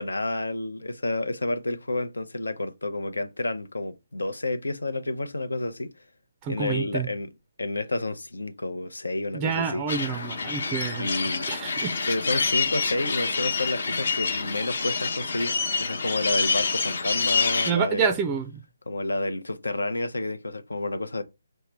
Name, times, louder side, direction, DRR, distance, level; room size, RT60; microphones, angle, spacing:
voice 1, 0.0-5.9 6.5-7.3 7.6-9.9 11.0-11.5 12.1-15.6 15.8-18.1 18.9-21.2, left 2 dB, 85° left, 0.6 m, -30 dB
voice 2, 6.4-7.1 9.3-11.1 11.5-12.0 17.7-18.5, right 6 dB, 20° right, 0.4 m, -28 dB
sound 1, 9.9-17.7, left 4 dB, 60° left, 1.0 m, -27 dB
5.5 x 2.1 x 3.2 m
figure-of-eight pair, 150°, 0 cm